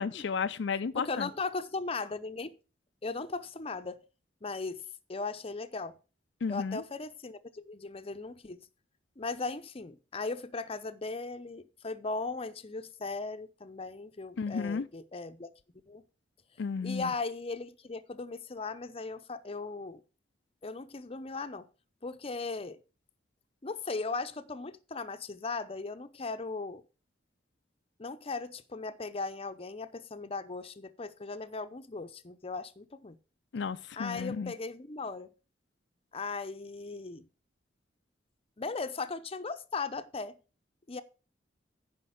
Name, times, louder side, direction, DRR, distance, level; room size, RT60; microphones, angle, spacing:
voice 1, 0.0-1.3 6.4-6.8 14.4-14.9 16.6-17.1 33.5-34.5, left 5 dB, 75° left, 0.4 m, -33 dB
voice 2, 0.9-2.5 3.0-4.0 4.4-6.0 6.5-8.6 9.2-16.0 16.8-20.0 20.6-21.7 22.0-22.8 23.6-26.8 28.0-33.2 34.0-35.3 36.1-37.3 38.6-40.4 40.9-41.0, left 3 dB, 35° left, 0.7 m, -38 dB
10.0 x 5.2 x 6.3 m
head